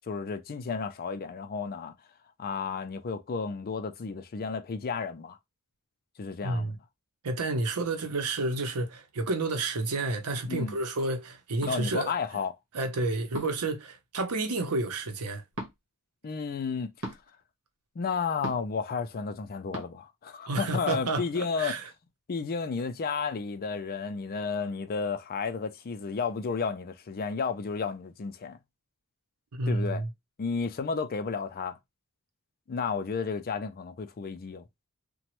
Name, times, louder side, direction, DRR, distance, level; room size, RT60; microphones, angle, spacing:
voice 1, 0.1-1.9 2.4-5.4 6.2-6.8 10.5-10.8 11.7-12.6 16.2-17.2 18.0-21.8 22.3-28.6 29.7-30.0 30.4-31.8 32.7-34.6, left 5 dB, 40° left, 0.4 m, -32 dB
voice 2, 6.4-6.8 7.2-12.1 12.7-15.4 20.5-21.8 29.5-30.1, right 2 dB, 80° right, 0.7 m, -30 dB
sound 1, 11.6-11.8 13.3-13.7 15.5-15.7 17.0-17.2 18.4-18.8 19.7-19.9, right 1 dB, 60° right, 1.1 m, -37 dB
2.9 x 2.2 x 3.0 m
head